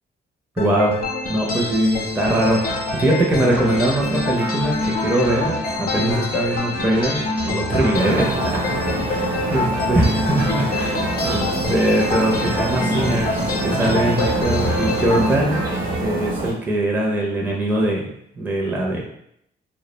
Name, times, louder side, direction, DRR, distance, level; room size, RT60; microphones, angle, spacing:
sound 1, 0.6-15.3, left 3 dB, 50° left, 0.6 m, -26 dB
voice 1, 0.6-1.0 1.3-8.3 9.0-15.6 16.0-18.1 18.4-19.0, right 1 dB, 10° right, -2 dB, 0.5 m, -22 dB
sound 2, 2.2-15.9, right 2 dB, 70° right, 0.9 m, -32 dB
sound 3, 7.9-16.5, right 1 dB, 45° right, 0.7 m, -26 dB
2.2 x 2.1 x 3.1 m, 0.73 s
cardioid pair, 90°, 20 cm